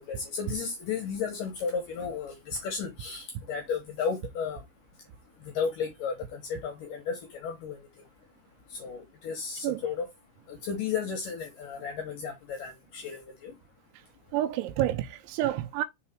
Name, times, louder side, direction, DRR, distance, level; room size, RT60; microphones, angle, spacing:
voice 1, 0.0-4.6 5.5-7.8 8.7-10.1 10.5-13.5, left 6 dB, 75° left, 2.0 m, -34 dB
voice 2, 14.3-15.8, right 13 dB, 90° right, 3.0 m, -29 dB
6.3 x 4.1 x 4.3 m
omnidirectional pair, 5.3 m